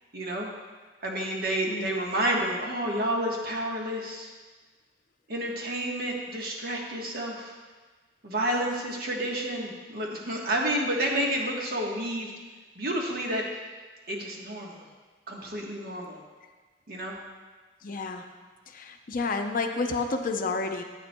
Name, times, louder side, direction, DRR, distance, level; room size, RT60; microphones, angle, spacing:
voice 1, 0.1-0.5 1.0-4.3 5.3-7.5 8.2-12.3 12.8-13.4 14.1-14.8 15.3-16.2 16.9-17.2, right 1 dB, 55° right, -1 dB, 1.2 m, -30 dB
voice 2, 1.7-2.0 17.8-18.3 18.7-20.8, left 3 dB, 50° left, 5 dB, 0.5 m, -30 dB
9.7 x 8.6 x 2.2 m, 1.4 s
head